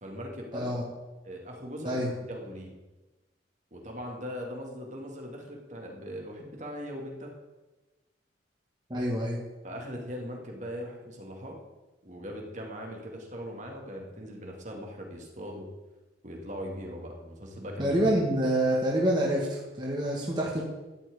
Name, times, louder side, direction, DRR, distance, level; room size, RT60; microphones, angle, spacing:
voice 1, 0.0-0.7 1.2-2.7 3.7-7.3 9.6-11.6 12.0-15.7 16.2-18.0, equal, 40° right, 0 dB, 2.4 m, -40 dB
voice 2, 0.5-0.8 1.9-2.1 8.9-9.4 17.8-20.6, right 1 dB, 25° right, -4 dB, 2.1 m, -27 dB
13.0 x 6.2 x 8.6 m, 1.1 s
head